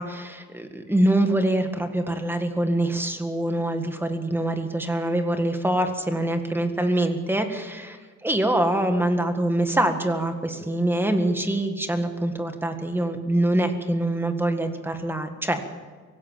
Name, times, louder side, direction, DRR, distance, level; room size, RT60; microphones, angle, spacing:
voice 1, 0.0-8.0 8.2-15.6, right 1 dB, 5° right, 6 dB, 1.8 m, -24 dB
24.0 x 17.0 x 7.4 m, 1.5 s
cardioid pair, 155°, 32 cm